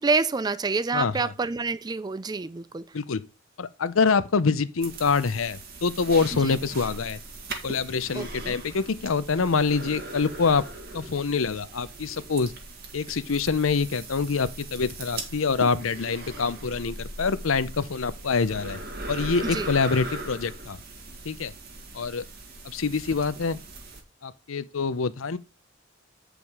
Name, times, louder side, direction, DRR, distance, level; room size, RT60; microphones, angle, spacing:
voice 1, 0.0-3.0 6.3-6.6 8.1-8.6 19.5-19.7, right 4 dB, 20° right, 0.4 m, -28 dB
voice 2, 0.9-1.3 2.9-3.2 3.6-7.2 7.6-10.6 10.9-12.5 12.9-18.8 19.1-20.8 21.2-21.5 21.9-22.2 22.6-23.6 24.2-25.4, left 5 dB, 85° left, 0.7 m, -25 dB
sound 1, 4.8-24.0, right 2 dB, 50° right, 1.9 m, -39 dB
9.0 x 5.1 x 4.8 m
head